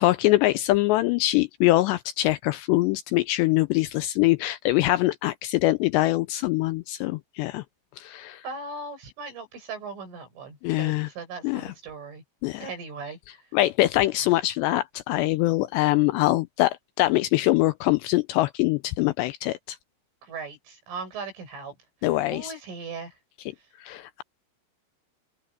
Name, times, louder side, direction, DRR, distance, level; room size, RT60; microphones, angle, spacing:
voice 1, 0.0-7.6 8.0-8.4 10.6-11.1 11.4-11.7 12.4-12.7 13.5-19.8 22.0-22.5 23.8-24.2, left 17 dB, 85° left, 2.5 m, -23 dB
voice 2, 8.4-12.2 12.6-13.2 20.2-21.7 22.3-23.2, right 4 dB, 90° right, 10.5 m, -38 dB
open air
omnidirectional pair, 5.5 m